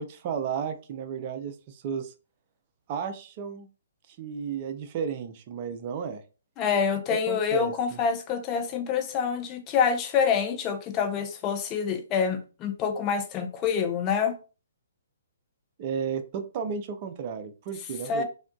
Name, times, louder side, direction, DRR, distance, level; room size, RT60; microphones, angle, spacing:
voice 1, 0.0-2.1 2.9-3.7 4.1-6.2 7.3-8.0 15.8-18.2, right 7 dB, 40° right, 0.4 m, -33 dB
voice 2, 6.6-14.4 18.1-18.2, left 6 dB, 25° left, 0.5 m, -26 dB
3.4 x 2.2 x 2.5 m
hypercardioid pair, 140°, 0 cm